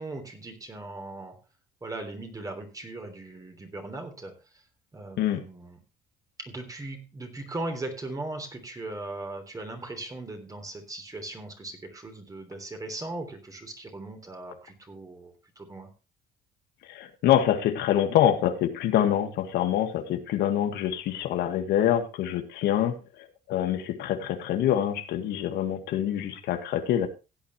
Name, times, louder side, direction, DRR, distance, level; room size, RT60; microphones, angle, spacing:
voice 1, 0.0-1.4 1.8-4.3 4.9-5.8 6.4-15.9, right 2 dB, 20° right, 3.3 m, -38 dB
voice 2, 16.9-27.1, left 11 dB, 80° left, 1.7 m, -25 dB
16.5 x 8.7 x 3.1 m
cardioid pair, 110°, 17 cm